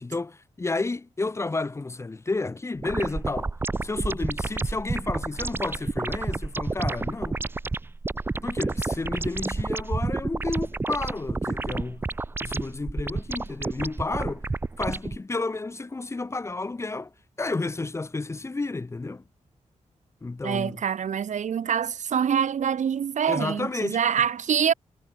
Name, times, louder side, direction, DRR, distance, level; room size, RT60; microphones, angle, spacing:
voice 1, 0.0-3.5 3.8-7.4 8.4-12.0 12.4-14.5 14.8-17.1 17.4-19.2 20.2-20.8 23.3-24.0, left 3 dB, 20° left, 1.0 m, -31 dB
sound 1, 2.8-15.2, right 3 dB, 15° right, 0.4 m, -30 dB
voice 2, 20.4-24.7, right 8 dB, 75° right, 1.6 m, -25 dB
wide cardioid pair, 160°, 13 cm